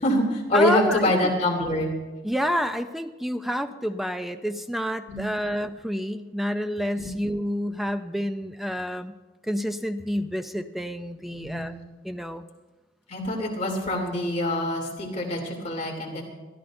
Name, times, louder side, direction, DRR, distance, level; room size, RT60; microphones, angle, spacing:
voice 1, 0.0-1.9 5.1-5.2 7.0-7.1 11.3-11.7 13.1-16.2, left 1 dB, 40° left, -2 dB, 3.0 m, -25 dB
voice 2, 0.5-1.3 2.2-9.1 9.4-11.7 12.0-12.4, equal, ahead, 8 dB, 0.5 m, -29 dB
22.5 x 13.5 x 2.6 m, 1.2 s
head